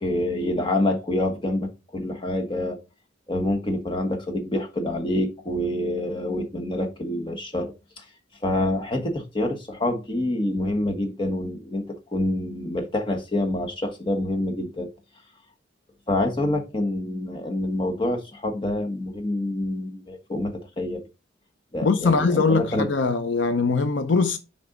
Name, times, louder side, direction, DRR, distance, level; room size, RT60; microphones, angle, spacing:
voice 1, 0.0-2.8 3.3-8.0 8.4-11.8 12.1-14.9 16.1-21.0 21.7-22.9, left 1 dB, 25° left, 1.3 m, -27 dB
voice 2, 21.8-24.4, left 4 dB, 70° left, 0.7 m, -21 dB
6.8 x 5.3 x 3.8 m
head